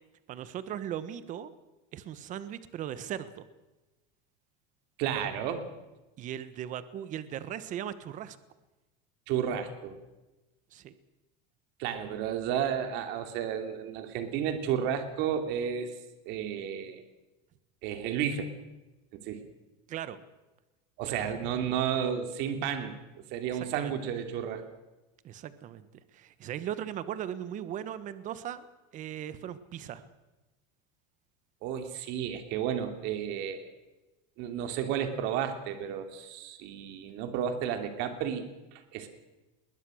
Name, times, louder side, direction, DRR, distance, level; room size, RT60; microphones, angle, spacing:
voice 1, 0.3-1.5 1.9-3.4 6.2-8.4 10.7-11.0 19.9-20.2 21.0-21.2 23.8-23.9 25.2-25.9 26.1-28.6 28.9-30.1, right 10 dB, 35° right, 14 dB, 1.3 m, -38 dB
voice 2, 5.0-5.7 9.3-10.0 11.8-15.9 16.3-17.0 17.8-18.5 19.1-19.4 21.0-24.7 31.6-33.6 34.4-39.1, right 8 dB, 55° right, 7 dB, 2.9 m, -32 dB
21.0 x 19.5 x 6.5 m, 1.1 s
supercardioid pair, 140°, 21 cm